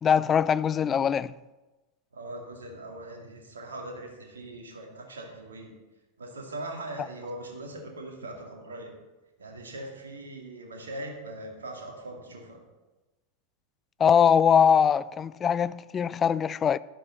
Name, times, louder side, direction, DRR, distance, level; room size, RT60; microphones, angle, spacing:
voice 1, 0.0-1.3 14.0-16.8, left 7 dB, 25° left, 0.3 m, -22 dB
voice 2, 2.1-5.7 6.2-8.9 9.4-12.6, right 1 dB, 70° right, 2.4 m, -40 dB
11.5 x 11.0 x 4.0 m
figure-of-eight pair, 90°, 0 cm